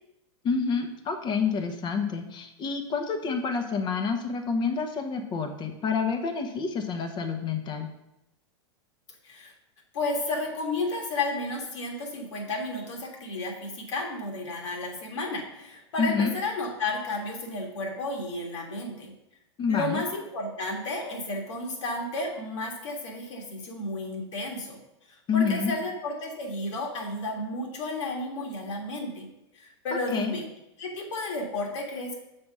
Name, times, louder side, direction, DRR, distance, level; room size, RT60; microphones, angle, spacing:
voice 1, 0.4-7.9 16.0-16.3 19.6-20.0 25.3-25.7 30.1-30.3, left 5 dB, 30° left, 6 dB, 0.9 m, -28 dB
voice 2, 9.9-19.1 19.7-24.8 25.3-29.3 29.5-30.5 30.8-32.2, left 2 dB, 75° left, 1 dB, 1.7 m, -32 dB
6.8 x 3.5 x 5.5 m, 0.88 s
hypercardioid pair, 115°, 15 cm